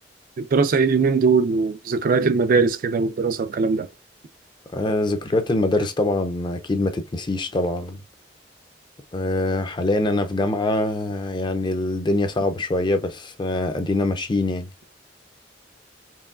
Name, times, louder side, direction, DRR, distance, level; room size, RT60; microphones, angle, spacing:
voice 1, 0.4-3.9, right 4 dB, 50° right, 0.4 m, -20 dB
voice 2, 4.7-8.0 9.1-14.7, left 2 dB, 25° left, 0.5 m, -24 dB
4.6 x 3.0 x 2.4 m
head